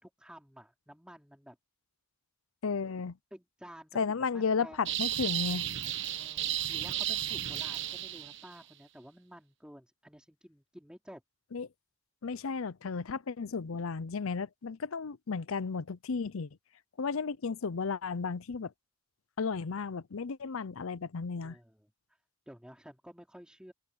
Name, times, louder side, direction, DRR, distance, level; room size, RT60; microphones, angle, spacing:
voice 1, 0.0-1.6 3.3-5.0 6.1-11.2 21.4-21.9 22.5-23.7, equal, 5° right, 4.3 m, -52 dB
voice 2, 2.6-3.2 3.9-5.7 11.5-11.7 12.2-16.5 17.0-18.7 19.4-21.6, left 5 dB, 75° left, 0.6 m, -33 dB
sound 1, 4.9-8.5, right 12 dB, 55° right, 1.1 m, -33 dB
open air
head